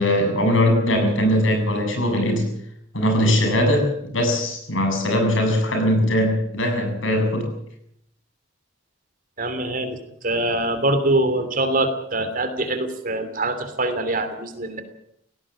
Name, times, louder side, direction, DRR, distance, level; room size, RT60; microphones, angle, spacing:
voice 1, 0.0-2.5 2.9-7.5, left 1 dB, 80° left, 4 dB, 7.5 m, -20 dB
voice 2, 9.4-10.0 10.2-14.8, right 2 dB, 45° right, 9 dB, 3.0 m, -23 dB
18.0 x 17.5 x 8.7 m, 0.73 s
head